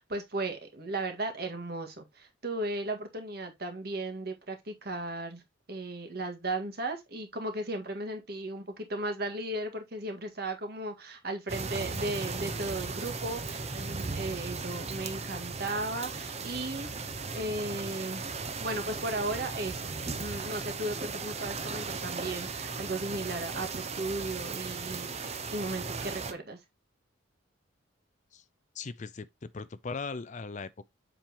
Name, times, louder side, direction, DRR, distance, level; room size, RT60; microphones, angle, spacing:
voice 1, 0.0-5.4 5.7-16.9 17.3-26.6, right 2 dB, 50° right, 1.8 m, -36 dB
sound 1, 11.5-26.3, right 4 dB, 30° right, 0.8 m, -37 dB
voice 2, 28.7-30.8, left 4 dB, 35° left, 0.4 m, -39 dB
7.4 x 5.3 x 2.9 m
head